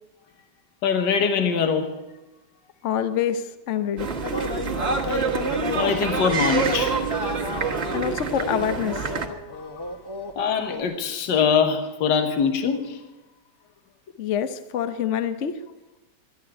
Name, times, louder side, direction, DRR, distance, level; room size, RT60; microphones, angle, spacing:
voice 1, 0.8-1.9 4.7-4.8 5.1-5.3 5.7-7.0 9.6-9.7 10.4-13.0, left 6 dB, 80° left, 6 dB, 1.8 m, -23 dB
voice 2, 2.8-4.1 7.9-9.1 14.2-15.5, left 8 dB, 55° left, 11 dB, 0.9 m, -26 dB
sound 1, 4.0-9.3, right 5 dB, 40° right, 1.6 m, -27 dB
sound 2, 4.2-10.4 10.7-10.8, left 2 dB, 20° left, 0.7 m, -33 dB
13.5 x 11.0 x 8.7 m, 1.0 s
omnidirectional pair, 1.9 m